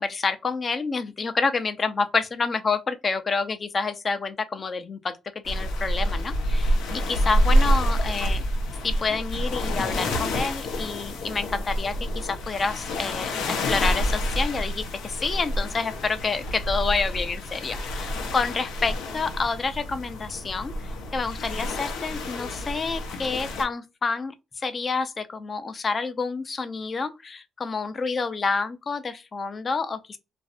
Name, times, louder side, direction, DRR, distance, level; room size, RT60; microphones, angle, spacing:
voice 1, 0.0-5.2 5.4-8.4 8.8-20.7 21.1-30.2, left 4 dB, 35° left, 0.4 m, -28 dB
sound 1, 5.5-23.6, equal, 90° left, 0.6 m, -27 dB
2.5 x 2.1 x 2.3 m
cardioid pair, 90°, 0 cm